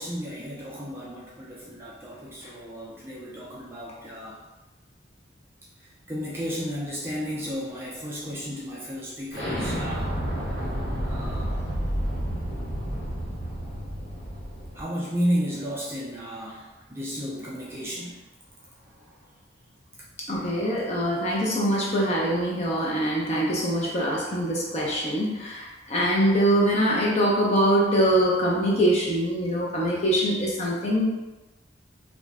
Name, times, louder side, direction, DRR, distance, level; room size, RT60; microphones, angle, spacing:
voice 1, 0.0-4.4 6.1-10.1 11.0-11.6 14.7-18.2 18.8-19.1, equal, 10° right, -6 dB, 0.4 m, -33 dB
Explosion, 9.3-14.8, equal, 80° left, 1.1 m, -30 dB
voice 2, 20.3-31.1, equal, 35° left, -4 dB, 0.6 m, -23 dB
2.4 x 2.1 x 3.4 m, 1.1 s
head